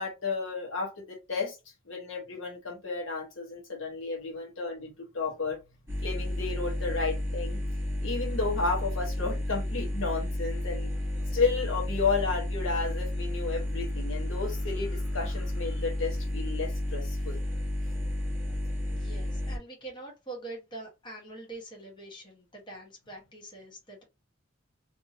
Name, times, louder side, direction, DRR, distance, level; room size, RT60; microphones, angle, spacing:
voice 1, 0.0-1.6 1.9-5.6 6.0-7.6 8.0-10.9 11.3-17.4, left 4 dB, 70° left, 1.1 m, -32 dB
sound 1, 5.9-19.6, left 1 dB, 10° right, 1.1 m, -32 dB
voice 2, 18.9-24.0, right 2 dB, 25° left, 1.1 m, -44 dB
2.7 x 2.6 x 2.7 m
head